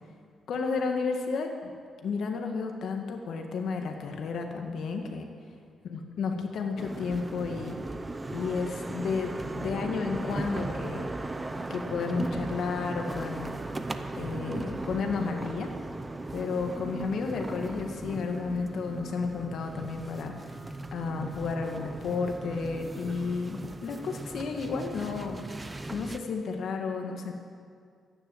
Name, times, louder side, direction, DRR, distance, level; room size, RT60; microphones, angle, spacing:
voice 1, 0.5-1.7 2.0-5.2 5.8-7.8 8.3-11.1 11.7-13.5 14.2-15.7 16.3-20.3 20.9-25.4 25.9-27.3, left 4 dB, 70° left, 3 dB, 1.7 m, -32 dB
sound 1, 6.8-26.2, right 2 dB, 20° right, 0.7 m, -37 dB
12.5 x 10.0 x 7.8 m, 2.1 s
cardioid pair, 105°, 0 cm